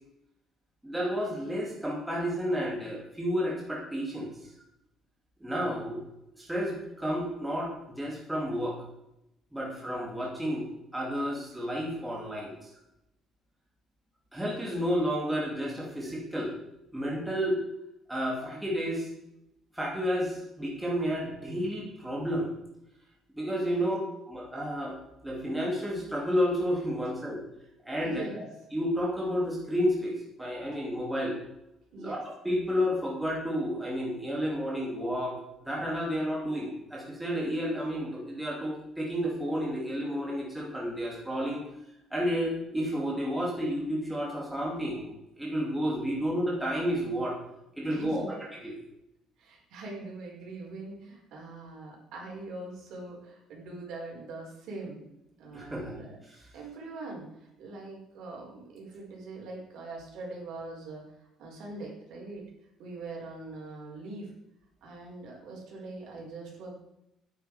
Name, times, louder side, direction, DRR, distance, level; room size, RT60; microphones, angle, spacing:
voice 1, 0.8-4.3 5.4-6.0 6.3-8.8 9.5-10.7 10.9-12.7 14.3-16.5 16.9-17.6 18.1-19.1 19.7-22.5 23.3-24.0 24.3-25.0 25.2-27.4 27.8-28.2 28.7-31.4 32.0-32.2 32.4-35.4 35.6-41.6 42.1-47.4 47.8-48.7 55.5-56.0 56.2-56.5, equal, 5° right, -3 dB, 2.7 m, -31 dB
voice 2, 28.0-28.5 31.9-32.2 47.9-48.4 49.4-55.0 55.4-56.2 56.5-61.0 61.4-62.4 62.8-64.3 64.8-66.8, right 2 dB, 65° right, -1 dB, 5.2 m, -42 dB
13.5 x 9.9 x 5.0 m, 0.86 s
cardioid pair, 170°, 0 cm